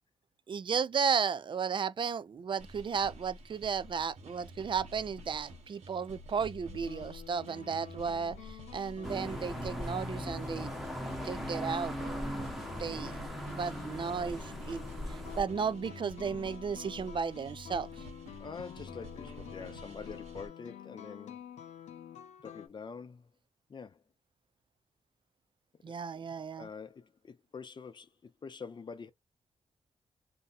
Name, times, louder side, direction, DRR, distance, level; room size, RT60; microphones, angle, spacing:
voice 1, 0.5-8.4 8.7-10.7 11.2-12.5 12.8-13.2 13.5-14.8 15.4-17.9 25.8-26.7, right 6 dB, 45° right, 0.4 m, -34 dB
sound 1, 2.6-20.5, equal, 80° right, 1.1 m, -50 dB
sound 2, 6.7-22.7, left 10 dB, 85° left, 0.6 m, -49 dB
sound 3, 9.0-15.4, equal, ahead, 0.9 m, -39 dB
voice 2, 18.4-21.5 22.4-23.3 23.7-24.0 25.9-26.3 26.6-29.1, left 5 dB, 40° left, 0.6 m, -46 dB
2.7 x 2.2 x 4.0 m
cardioid pair, 75°, 12 cm